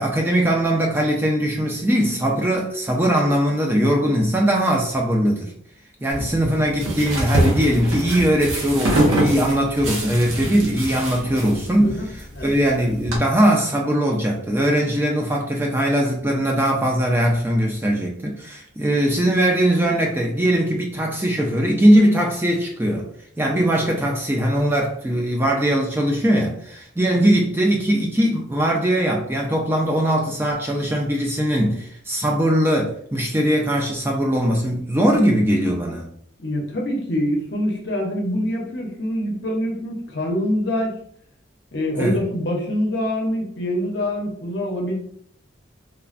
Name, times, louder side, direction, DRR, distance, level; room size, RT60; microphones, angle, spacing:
voice 1, 0.0-5.5 6.0-12.0 12.4-23.1 23.4-36.1 42.0-42.2, equal, 10° right, 0 dB, 0.3 m, -20 dB
sound 1, 6.1-13.2, right 1 dB, 90° right, 0.9 m, -24 dB
voice 2, 11.8-12.5 27.1-27.3 36.4-40.9 41.7-44.9, equal, 55° left, 0 dB, 0.6 m, -25 dB
3.2 x 2.1 x 2.4 m, 0.65 s
head